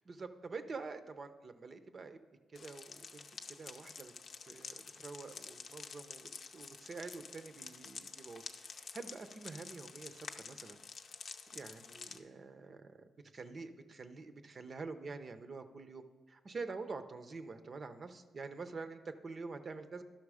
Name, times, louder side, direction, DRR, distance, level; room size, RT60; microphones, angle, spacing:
voice 1, 0.0-2.2 2.5-4.1 4.4-10.8 11.3-13.0 13.3-20.0, right 4 dB, 45° right, 9 dB, 0.6 m, -47 dB
sound 1, 2.5-12.2, left 5 dB, 60° left, 0.6 m, -49 dB
12.0 x 5.8 x 4.8 m, 1.4 s
cardioid pair, 75°, 0 cm